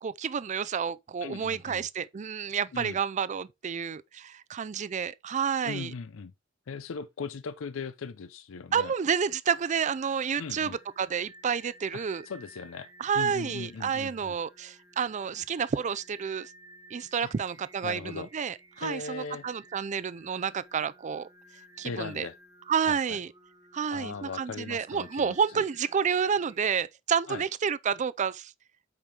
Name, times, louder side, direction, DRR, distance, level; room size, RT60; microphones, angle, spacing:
voice 1, 0.0-5.9 8.7-12.3 13.0-16.5 16.9-21.3 21.8-22.3 22.7-23.3 23.7-28.5, right 7 dB, 35° right, 0.4 m, -30 dB
voice 2, 1.2-1.9 2.7-3.0 5.6-6.3 6.7-8.9 10.4-10.8 11.9-12.9 13.1-14.3 17.2-17.3 17.8-18.3 18.8-19.5 21.8-22.3 22.9-23.2 23.9-25.6 27.3-27.4, left 5 dB, 90° left, 0.5 m, -39 dB
Singing, 9.4-26.8, right 1 dB, 20° right, 1.3 m, -55 dB
8.1 x 5.2 x 3.3 m
head